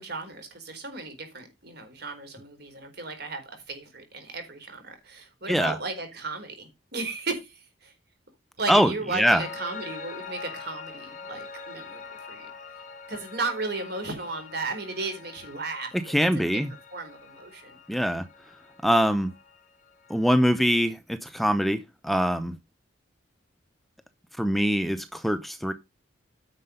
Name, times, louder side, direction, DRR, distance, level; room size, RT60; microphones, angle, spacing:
voice 1, 0.0-7.9 8.6-12.0 12.3-12.5 13.1-16.1 16.5-16.6 16.9-17.8, right 3 dB, 60° right, 4.3 m, -35 dB
voice 2, 8.7-9.4 15.9-16.7 17.9-18.2 18.8-19.3 20.1-22.6 24.4-25.7, equal, ahead, 0.6 m, -23 dB
Piano, 9.3-20.6, left 5 dB, 45° left, 3.8 m, -44 dB
9.9 x 6.5 x 5.2 m
head